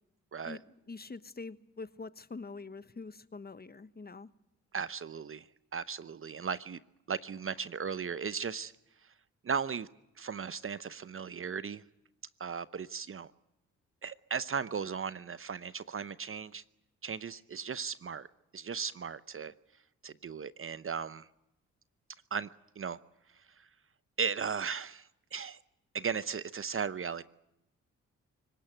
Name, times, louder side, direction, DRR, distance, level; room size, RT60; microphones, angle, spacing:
voice 1, 0.4-4.3, left 3 dB, 25° left, 14 dB, 1.1 m, -45 dB
voice 2, 4.7-5.5 5.7-6.8 7.1-8.7 9.4-9.9 10.2-11.8 12.4-13.3 14.0-16.6 17.0-18.3 18.5-19.5 20.0-21.3 22.3-22.5 22.8-23.0 23.6-23.7 24.2-25.6 25.9-27.2, right 6 dB, 40° right, 16 dB, 0.8 m, -36 dB
25.0 x 16.0 x 9.2 m, 0.86 s
hypercardioid pair, 45°, 35 cm